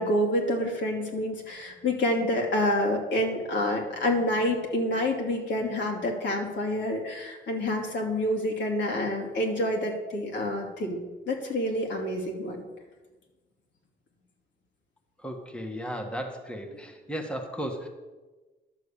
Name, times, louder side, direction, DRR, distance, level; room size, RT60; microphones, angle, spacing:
voice 1, 0.0-12.7, left 1 dB, 65° left, 1 dB, 2.7 m, -28 dB
voice 2, 15.2-17.9, equal, 5° left, 2 dB, 1.5 m, -35 dB
11.5 x 6.7 x 6.8 m, 1.2 s
cardioid pair, 90°, 20 cm